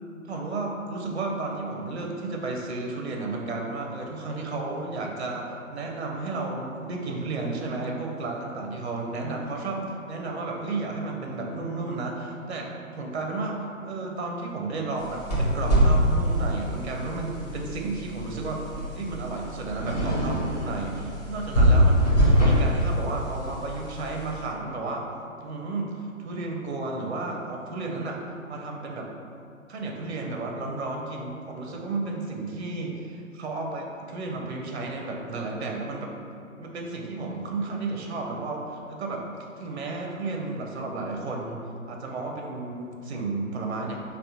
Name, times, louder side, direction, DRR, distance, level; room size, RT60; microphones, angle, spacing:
voice 1, 0.2-18.7 18.9-25.0 25.4-29.1 29.7-36.2 36.6-39.3 39.6-44.0, right 3 dB, 50° right, 0 dB, 0.5 m, -33 dB
sound 1, 15.0-24.4, equal, 30° left, 0.7 m, -24 dB
3.5 x 2.2 x 2.8 m, 2.6 s
figure-of-eight pair, 135°, 42 cm